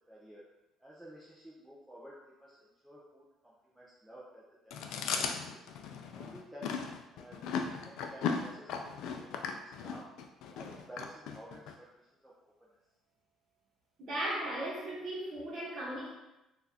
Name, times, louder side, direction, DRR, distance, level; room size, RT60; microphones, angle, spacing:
voice 1, 0.1-0.4 0.8-4.8 5.2-5.6 6.1-6.7 7.1-7.4 7.8-10.1 10.5-11.9 12.2-12.3, right 1 dB, 5° right, -7 dB, 0.4 m, -53 dB
Chewing mastication, 4.7-11.7, left 6 dB, 65° left, 0.3 m, -37 dB
voice 2, 14.0-16.1, right 1 dB, 40° right, -5 dB, 1.1 m, -37 dB
3.9 x 2.4 x 2.7 m, 0.94 s
cardioid pair, 170°, 0 cm